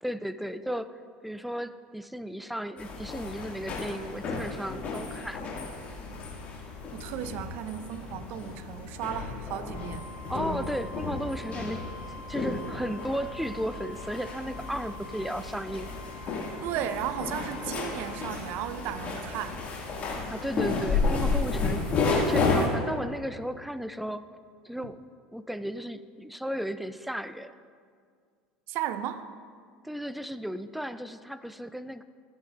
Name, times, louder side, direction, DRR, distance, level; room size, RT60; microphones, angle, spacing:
voice 1, 0.0-5.4 10.3-15.9 20.3-24.3 24.6-25.0 25.3-27.6 29.8-32.0, equal, ahead, 13 dB, 0.4 m, -35 dB
sound 1, 2.8-22.7, left 4 dB, 40° left, 2.2 m, -32 dB
voice 2, 6.9-10.1 16.6-19.6 28.7-29.3, right 11 dB, 60° right, 12 dB, 0.6 m, -35 dB
Wind instrument woodwind instrument, 9.7-18.3, left 1 dB, 70° left, 1.1 m, -46 dB
14.5 x 9.1 x 2.6 m, 2.1 s
hypercardioid pair, 90°, 4 cm